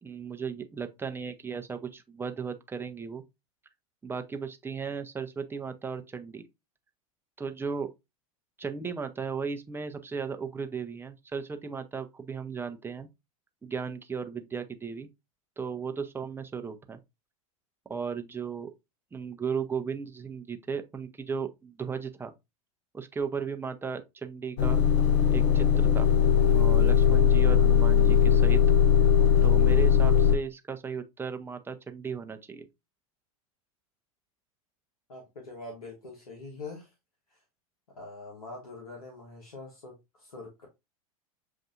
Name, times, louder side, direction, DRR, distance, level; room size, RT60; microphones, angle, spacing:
voice 1, 0.0-3.2 4.0-6.4 7.4-7.9 8.6-13.1 13.6-15.1 15.6-17.0 17.9-18.7 19.1-22.3 22.9-24.8 25.3-26.1 26.5-28.6 29.4-32.7, right 6 dB, 10° right, 0.7 m, -35 dB
Motor vehicle (road) / Engine starting / Idling, 24.6-30.4, left 8 dB, 55° left, 0.6 m, -20 dB
voice 2, 35.1-36.9 37.3-37.4 37.9-40.7, left 3 dB, 85° left, 1.2 m, -44 dB
6.8 x 2.6 x 2.4 m
hypercardioid pair, 90°, 18 cm